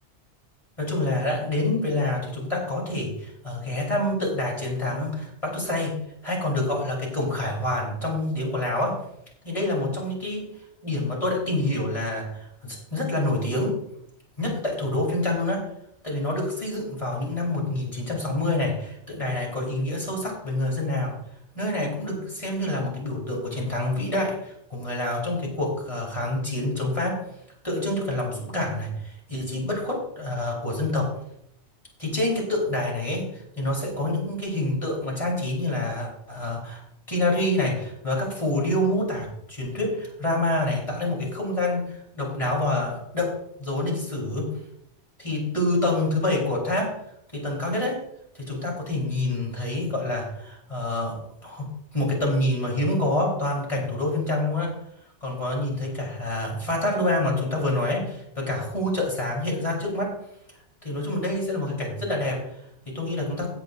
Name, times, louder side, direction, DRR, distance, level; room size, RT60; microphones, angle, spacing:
voice 1, 0.8-9.0 9.4-10.5 10.8-13.8 14.4-15.7 16.0-21.2 21.5-27.2 27.6-31.1 32.0-36.8 37.1-44.5 45.2-47.0 47.3-48.0 48.3-54.7 55.2-60.2 60.8-62.5 62.9-63.5, left 1 dB, 25° left, -2 dB, 4.0 m, -27 dB
16.5 x 9.1 x 2.6 m, 0.73 s
omnidirectional pair, 1.2 m